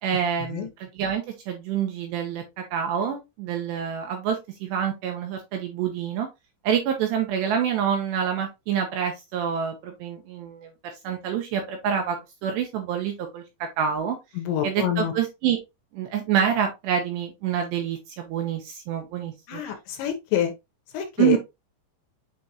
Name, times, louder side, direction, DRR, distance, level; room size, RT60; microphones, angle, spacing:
voice 1, 0.0-2.4 2.7-6.3 6.6-10.7 11.0-12.2 12.4-13.4 13.8-14.2 14.6-15.6 15.9-19.6 21.2-21.4, right 8 dB, 75° right, 2.7 m, -27 dB
voice 2, 14.3-15.1 19.5-20.5 20.9-21.4, left 10 dB, 75° left, 3.0 m, -27 dB
8.9 x 3.6 x 2.9 m
omnidirectional pair, 5.9 m